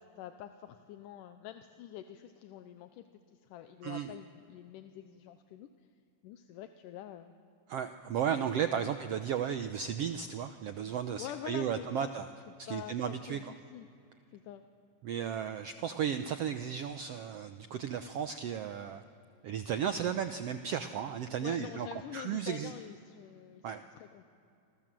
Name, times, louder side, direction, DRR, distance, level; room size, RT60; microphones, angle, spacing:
voice 1, 0.0-5.7 6.2-7.3 8.8-8.9 11.2-12.1 12.5-13.9 14.3-14.6 21.4-24.2, left 11 dB, 80° left, 8 dB, 2.4 m, -46 dB
voice 2, 7.7-12.3 12.6-13.5 15.0-19.0 19.4-21.9 22.1-22.7 23.6-23.8, right 8 dB, 80° right, 9 dB, 1.3 m, -34 dB
29.0 x 26.5 x 7.6 m, 2.7 s
omnidirectional pair, 3.9 m